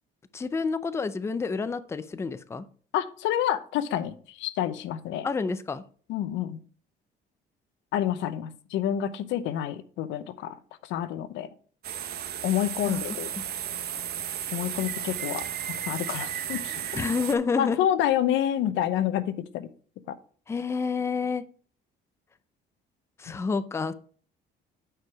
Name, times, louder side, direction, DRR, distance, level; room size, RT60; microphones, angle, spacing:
voice 1, 0.3-2.6 5.2-5.8 12.9-13.0 16.9-17.8 20.5-21.4 23.2-23.9, left 5 dB, 15° left, 13 dB, 0.4 m, -29 dB
voice 2, 2.9-5.3 6.1-6.6 7.9-10.6 10.8-11.5 12.4-13.3 14.5-15.4 15.9-17.0 17.6-19.7 20.1-20.2, left 11 dB, 90° left, 14 dB, 0.8 m, -28 dB
sound 1, 11.8-17.3, right 9 dB, 55° right, 1.0 m, -34 dB
9.0 x 4.8 x 4.7 m, 0.43 s
cardioid pair, 155°, 19 cm